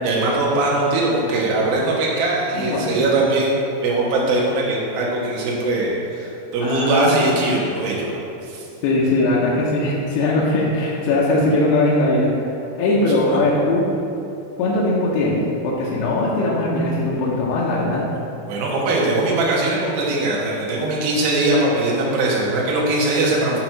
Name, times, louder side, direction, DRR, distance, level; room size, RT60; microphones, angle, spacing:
voice 1, 0.0-3.5 3.8-8.2 8.5-8.7 13.3-13.4 18.5-23.6, right 2 dB, 70° right, -4 dB, 2.5 m, -21 dB
voice 2, 2.5-3.0 6.6-7.2 8.8-12.3 12.8-13.8 14.6-18.1, left 2 dB, 80° left, -5 dB, 2.6 m, -20 dB
7.8 x 3.0 x 5.8 m, 2.7 s
omnidirectional pair, 5.1 m